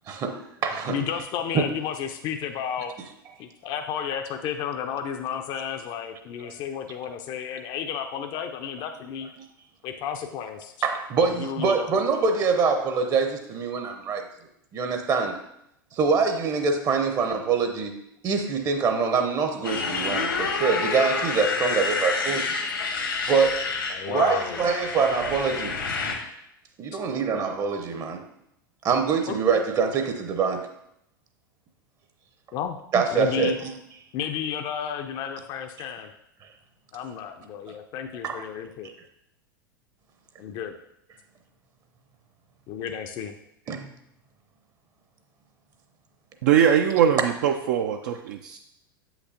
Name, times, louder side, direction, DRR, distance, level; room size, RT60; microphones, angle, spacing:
voice 1, 0.1-1.0 1.5-1.6 10.8-14.2 14.7-15.5 15.9-22.5 23.3-23.7 24.1-25.8 26.8-28.3 28.8-30.7 32.9-33.7 38.2-38.4 43.7-43.9, right 5 dB, 30° right, 6 dB, 0.8 m, -25 dB
voice 2, 0.9-2.9 3.4-9.3 9.8-10.7 11.2-11.9 22.8-22.9 23.9-24.6 29.3-29.4 32.5-32.8 33.1-33.6 34.1-36.1 36.9-38.9 40.4-40.7 42.7-43.3, left 8 dB, 40° left, 6 dB, 0.5 m, -32 dB
Motorcycle, 19.6-26.1, left 4 dB, 75° left, 1.4 m, -28 dB
voice 3, 46.4-48.6, right 9 dB, 55° right, 5 dB, 0.4 m, -21 dB
7.9 x 5.9 x 2.8 m, 0.78 s
figure-of-eight pair, 85°, 12 cm